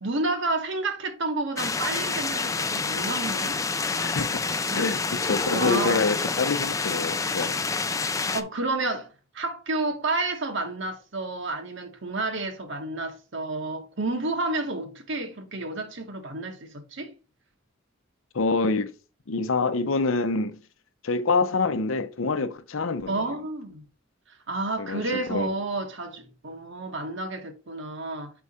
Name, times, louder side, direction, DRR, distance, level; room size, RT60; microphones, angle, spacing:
voice 1, 0.0-3.6 4.7-4.8 5.5-6.1 8.3-17.1 23.1-23.8 24.3-28.3, right 2 dB, 60° right, 1.2 m, -30 dB
sound 1, 1.6-8.4, left 4 dB, 15° left, 0.4 m, -28 dB
voice 2, 4.0-7.6 18.3-18.9 19.3-20.6 21.0-23.3 24.8-25.0 25.3-25.5, left 4 dB, 70° left, 0.7 m, -26 dB
4.9 x 4.6 x 4.2 m
head